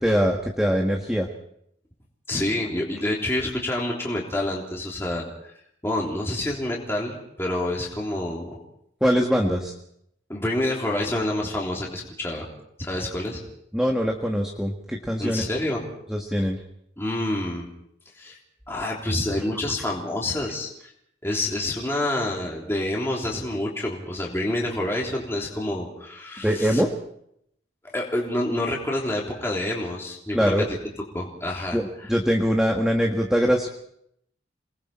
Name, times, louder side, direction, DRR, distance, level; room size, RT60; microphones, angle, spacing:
voice 1, 0.0-1.3 9.0-9.7 13.7-15.4 16.1-16.6 26.4-26.9 30.3-30.7 31.7-33.7, equal, 5° right, 1 dB, 1.6 m, -22 dB
voice 2, 2.3-5.5 5.8-8.5 10.3-12.5 12.8-13.4 15.2-15.8 17.0-17.7 18.1-18.4 18.7-20.7 21.2-26.8 27.9-30.4 31.1-32.1, left 1 dB, 15° left, -3 dB, 3.4 m, -28 dB
29.5 x 20.0 x 4.4 m, 0.72 s
head